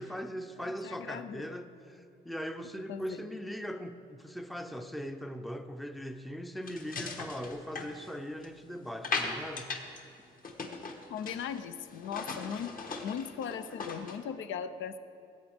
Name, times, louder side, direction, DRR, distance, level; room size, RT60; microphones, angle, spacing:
voice 1, 0.0-9.7, equal, ahead, 0.5 m, -40 dB
voice 2, 0.6-1.5 2.9-3.3 11.1-12.7 13.0-15.0, left 7 dB, 75° left, 0.6 m, -38 dB
sound 1, 6.7-8.6 9.0-10.0 10.3-11.6 11.9-14.2, left 4 dB, 45° left, 1.2 m, -38 dB
16.0 x 8.1 x 3.5 m
cardioid pair, 90°, 20 cm